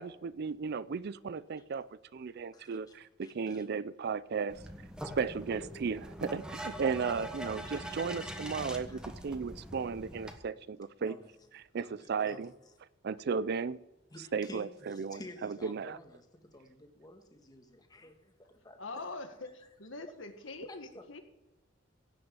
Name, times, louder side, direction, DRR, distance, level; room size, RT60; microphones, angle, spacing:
voice 1, 0.0-1.9 2.1-4.6 5.2-11.2 11.7-12.5 13.0-13.8 14.3-16.0, right 5 dB, 55° right, 19 dB, 0.4 m, -35 dB
voice 2, 2.5-3.0 3.2-3.6 7.7-8.0 8.9-9.0 11.0-11.3 11.7-12.5 14.1-18.3 18.6-19.0 19.6-19.7 20.1-20.2 20.7-21.1, left 1 dB, 20° left, 5 dB, 1.6 m, -52 dB
sound 1, 4.5-10.3, equal, 5° right, 1.4 m, -43 dB
voice 3, 18.8-21.2, left 3 dB, 80° left, 7 dB, 1.7 m, -43 dB
16.5 x 6.4 x 8.9 m, 1.0 s
head